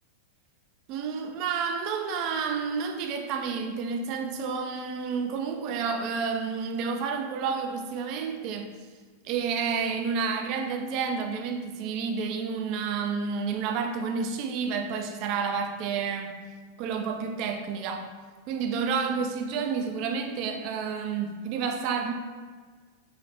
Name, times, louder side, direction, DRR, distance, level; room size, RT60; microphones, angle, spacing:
voice 1, 0.9-8.7 9.2-16.3 16.8-18.1 18.5-22.1, right 5 dB, 40° right, 5 dB, 0.5 m, -30 dB
5.5 x 2.0 x 4.3 m, 1.5 s
supercardioid pair, 155°, 0 cm